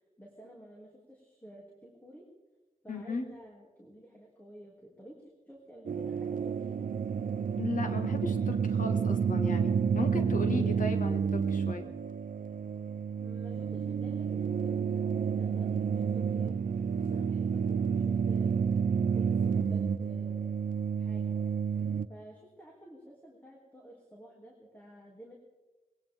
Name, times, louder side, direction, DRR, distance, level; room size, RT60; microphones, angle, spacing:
voice 1, 0.2-2.2 2.8-6.7 13.2-16.6 16.9-18.6 19.0-20.6 21.0-21.6 22.1-25.4, equal, 15° left, -2 dB, 2.9 m, -52 dB
voice 2, 2.9-3.3 7.6-11.9, left 3 dB, 75° left, 5 dB, 1.9 m, -35 dB
sound 1, 5.9-22.1, right 6 dB, 90° right, 0.6 m, -30 dB
20.5 x 17.5 x 3.7 m, 1.1 s
wide cardioid pair, 95°, 14 cm